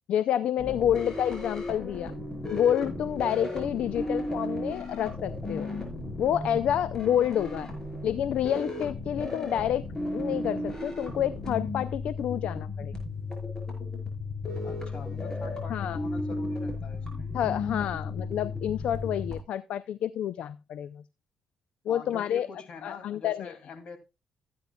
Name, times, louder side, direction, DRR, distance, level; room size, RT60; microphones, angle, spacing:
voice 1, 0.1-2.1 2.5-5.8 6.2-7.7 8.0-9.8 10.1-12.9 15.7-16.0 17.3-21.0 21.9-22.5 22.8-23.5, left 10 dB, 80° left, 0.4 m, -28 dB
sound 1, 0.6-19.4, left 2 dB, 25° left, 5.7 m, -34 dB
voice 2, 14.6-17.3 21.9-24.0, left 5 dB, 60° left, 2.4 m, -44 dB
15.0 x 9.5 x 2.3 m
cardioid pair, 70°, 2 cm